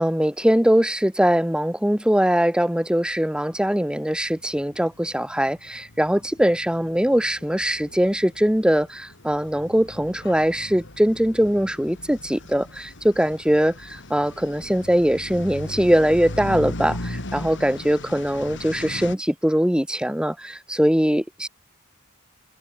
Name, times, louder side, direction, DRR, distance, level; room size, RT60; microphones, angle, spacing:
voice 1, 0.0-21.5, equal, 5° right, 1.5 m, -21 dB
sound 1, 3.7-3.8 4.0-19.2, left 1 dB, 60° left, 4.4 m, -38 dB
head